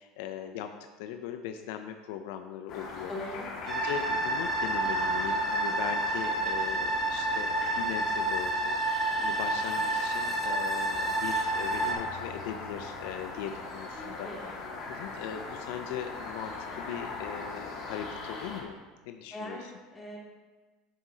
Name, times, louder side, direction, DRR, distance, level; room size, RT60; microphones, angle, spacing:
voice 1, 0.0-3.1 3.6-14.6 14.9-18.8 19.1-19.7, left 9 dB, 75° left, 7 dB, 0.5 m, -39 dB
sound 1, 2.7-18.6, left 3 dB, 50° left, 1.9 m, -40 dB
voice 2, 3.1-3.5 13.9-14.4 19.3-19.6 19.9-20.2, left 1 dB, 15° left, -4 dB, 2.3 m, -40 dB
sound 2, 3.7-11.9, right 2 dB, 15° right, 1.6 m, -29 dB
9.1 x 7.1 x 2.8 m, 1.3 s
supercardioid pair, 110°, 0 cm